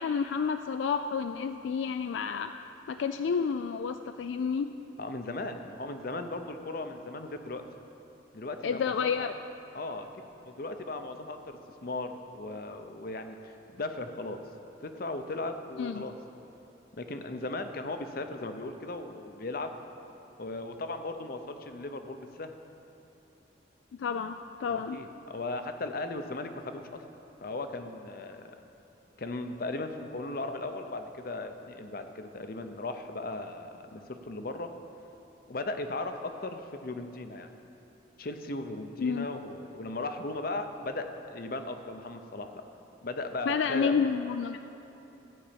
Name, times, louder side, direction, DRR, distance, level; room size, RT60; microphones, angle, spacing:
voice 1, 0.0-2.5 2.9-4.7 8.6-9.4 15.8-16.0 24.0-25.0 39.0-39.3 43.5-44.6, left 6 dB, 80° left, 8 dB, 0.3 m, -30 dB
voice 2, 5.0-7.6 8.3-9.3 9.7-14.4 14.8-16.1 17.0-19.8 20.4-22.5 24.7-27.0 27.4-28.5 29.2-34.7 35.5-37.5 38.2-42.6 43.0-44.1, left 2 dB, 50° left, 7 dB, 0.7 m, -37 dB
13.0 x 5.4 x 8.7 m, 2.9 s
head